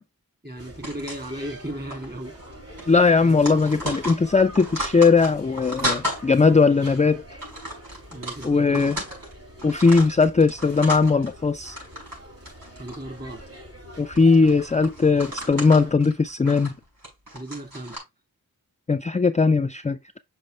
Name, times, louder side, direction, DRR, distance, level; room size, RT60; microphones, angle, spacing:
voice 1, 0.4-2.3 2.8-2.9 3.2-3.4 8.1-8.9 12.8-13.4 17.3-18.0, right 1 dB, 25° right, 2.5 m, -35 dB
sound 1, 0.6-15.9, right 1 dB, 40° right, 5.0 m, -45 dB
sound 2, 0.8-1.6 1.9-2.1 2.4-2.5 2.8-6.2 6.8-7.0 7.4-9.3 9.6-11.3 11.6-12.2 12.5-13.6 14.2-18.0, equal, 65° right, 5.0 m, -33 dB
voice 2, 2.9-7.2 8.4-9.0 9.6-11.8 14.0-16.7 18.9-20.0, left 4 dB, 20° left, 0.4 m, -19 dB
6.4 x 4.8 x 3.2 m
wide cardioid pair, 40°, 36 cm